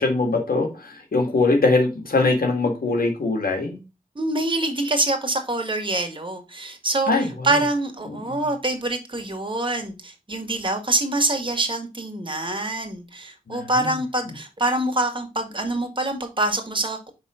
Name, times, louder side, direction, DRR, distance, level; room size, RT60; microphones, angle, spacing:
voice 1, 0.0-3.8 7.1-7.5 8.3-8.5 13.5-13.7, left 3 dB, 85° left, 3 dB, 1.7 m, -22 dB
voice 2, 4.1-17.0, right 2 dB, 35° right, 4 dB, 1.7 m, -25 dB
5.5 x 3.6 x 4.9 m, 0.27 s
cardioid pair, 45°, 15 cm